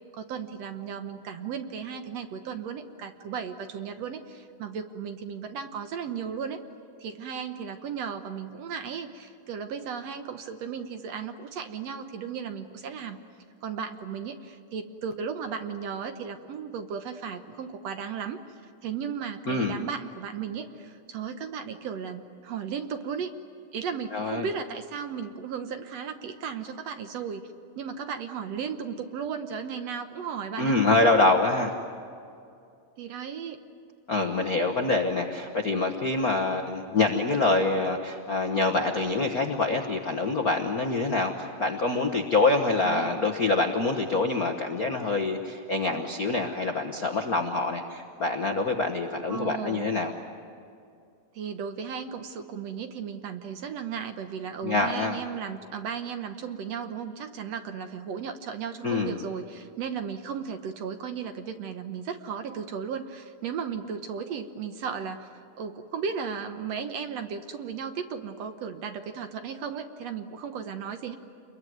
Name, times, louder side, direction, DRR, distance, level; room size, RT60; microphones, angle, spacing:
voice 1, 0.1-6.6 7.0-13.2 13.6-18.4 18.8-23.3 23.7-27.4 27.8-30.8 33.0-33.6 42.8-43.1 49.3-49.9 51.4-65.3 65.6-71.2, right 6 dB, 65° right, 7 dB, 2.0 m, -35 dB
voice 2, 24.1-24.5 30.6-31.7 34.1-50.1 54.6-55.2 58.8-59.2, left 3 dB, 55° left, 3 dB, 1.0 m, -25 dB
28.5 x 22.0 x 9.3 m, 2.5 s
omnidirectional pair, 3.6 m